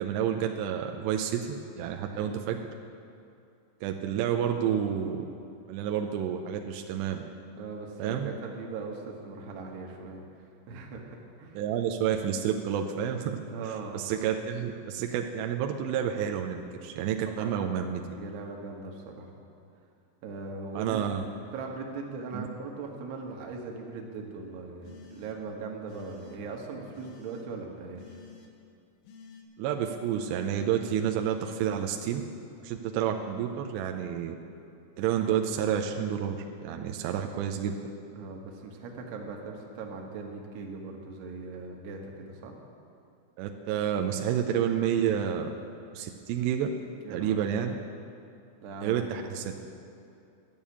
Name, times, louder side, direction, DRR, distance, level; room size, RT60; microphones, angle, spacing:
voice 1, 0.0-2.6 3.8-5.2 5.7-7.2 8.0-8.3 11.6-13.4 13.9-18.0 20.7-21.3 22.3-22.5 29.6-32.2 32.6-34.4 35.0-36.4 36.6-37.8 43.4-45.5 45.9-46.7 47.1-47.8 48.8-49.5, right 9 dB, 85° right, 3 dB, 2.6 m, -29 dB
voice 2, 2.0-2.3 7.6-10.2 10.7-11.6 13.5-14.0 17.4-17.8 18.1-19.3 20.2-21.0 21.5-28.2 38.1-42.6 47.0-47.5 48.6-49.5, right 4 dB, 70° right, 1 dB, 3.2 m, -40 dB
sound 1, 24.8-25.5 25.9-26.4 26.9-27.5 28.0-28.5 29.0-29.4, left 5 dB, 80° left, 3.6 m, -51 dB
12.5 x 7.2 x 9.9 m, 2.6 s
omnidirectional pair, 5.5 m